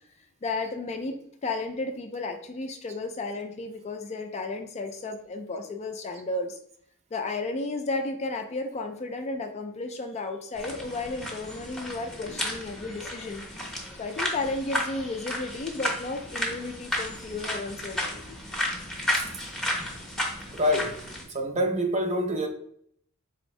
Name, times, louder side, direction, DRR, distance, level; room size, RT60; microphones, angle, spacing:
voice 1, 0.4-6.6 7.1-13.4 14.0-18.2, left 3 dB, 30° left, 0.3 m, -33 dB
sound 1, 10.5-21.2, left 1 dB, 5° left, 0.7 m, -33 dB
voice 2, 20.5-21.0 21.3-22.5, equal, 30° right, 0.5 m, -26 dB
4.2 x 2.6 x 3.1 m
head